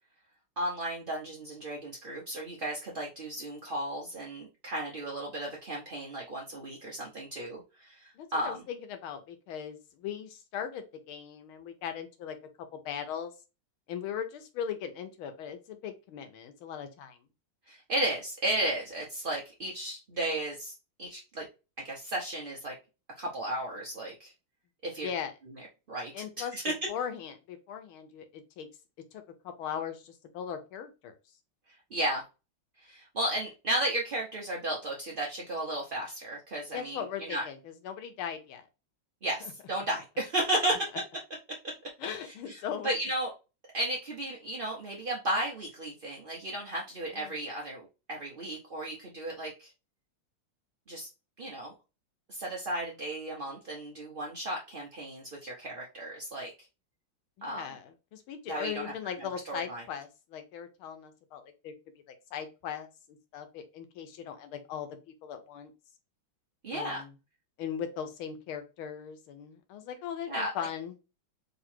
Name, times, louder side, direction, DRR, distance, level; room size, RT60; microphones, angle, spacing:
voice 1, 0.6-8.6 17.7-20.7 21.0-21.4 21.8-22.7 23.2-24.3 24.8-25.1 25.9-26.1 26.4-26.7 31.9-32.2 32.8-37.4 39.2-40.9 42.2-43.3 43.7-49.7 50.9-51.1 51.4-51.7 52.3-56.5 57.4-57.7 58.5-58.9 59.2-59.8 66.6-67.0 70.3-70.5, right 1 dB, 50° right, -3 dB, 0.6 m, -34 dB
voice 2, 8.1-12.4 12.7-13.3 13.9-17.2 25.0-25.3 26.1-28.7 29.1-31.1 36.7-38.6 39.4-39.5 42.0-42.9 47.1-47.4 57.4-61.7 62.3-65.7 66.7-67.1 67.6-71.0, left 8 dB, 85° left, 7 dB, 1.7 m, -39 dB
3.9 x 3.0 x 4.3 m, 0.29 s
omnidirectional pair, 2.2 m